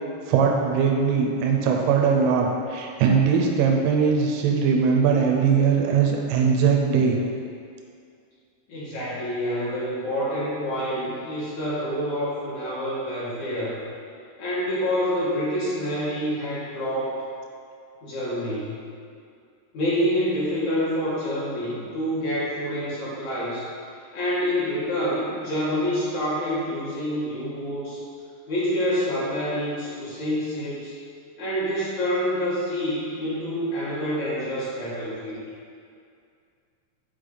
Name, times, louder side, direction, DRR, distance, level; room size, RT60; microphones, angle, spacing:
voice 1, 0.3-7.2, right 6 dB, 90° right, 1 dB, 3.2 m, -20 dB
voice 2, 8.7-13.8 14.4-17.2 18.0-18.8 19.7-23.7 24.1-28.0 28.5-30.9 31.4-35.4, equal, 70° left, -10 dB, 1.7 m, -27 dB
8.2 x 4.9 x 3.9 m, 2.3 s
omnidirectional pair, 5.6 m